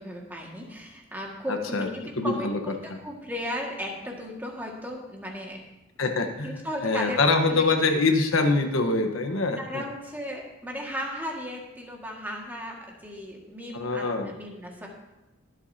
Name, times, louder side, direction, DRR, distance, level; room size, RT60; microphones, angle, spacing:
voice 1, 0.0-5.6 6.4-7.2 7.5-7.6 9.6-14.9, equal, 10° right, -1 dB, 1.9 m, -36 dB
voice 2, 1.5-1.9 2.2-2.6 2.9-3.0 6.0-9.8 13.7-14.3, left 3 dB, 80° left, 5 dB, 1.2 m, -24 dB
23.0 x 8.1 x 2.8 m, 1.0 s
head